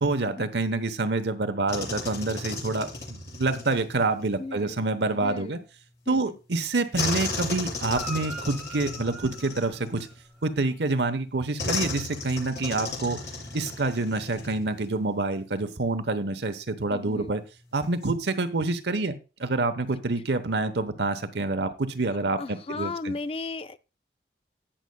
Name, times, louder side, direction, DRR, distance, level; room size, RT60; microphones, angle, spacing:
voice 1, 0.0-5.6 6.1-10.1 10.4-13.2 13.5-17.4 17.7-23.1, right 3 dB, 80° right, 1.0 m, -27 dB
sound 1, 1.7-4.4 7.0-10.5 11.6-15.0 15.2-15.4 17.8-18.1, left 3 dB, 85° left, 6.6 m, -35 dB
voice 2, 4.4-4.8 5.1-5.7 6.1-6.4 16.9-17.3 22.4-23.8, left 3 dB, 35° left, 0.4 m, -36 dB
Guitar, 7.9-10.5 14.3-14.4, right 1 dB, ahead, 1.1 m, -41 dB
18.0 x 6.5 x 2.2 m
head